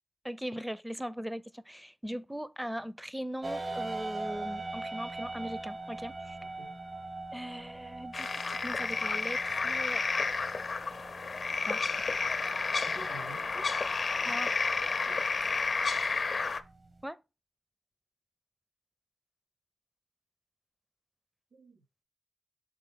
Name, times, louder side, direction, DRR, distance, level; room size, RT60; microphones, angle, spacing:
voice 1, 0.2-6.4 7.3-10.0 11.6-11.8 14.2-14.5 17.0-17.2, equal, 5° right, 0.4 m, -39 dB
sound 1, 3.4-17.0, right 2 dB, 50° right, 0.9 m, -43 dB
voice 2, 6.4-6.8 12.8-13.7 15.1-15.3 21.5-22.1, right 2 dB, 70° right, 4.2 m, -49 dB
sound 2, 8.1-16.6, left 4 dB, 60° left, 0.5 m, -31 dB
6.7 x 4.2 x 3.5 m
cardioid pair, 70°, 0 cm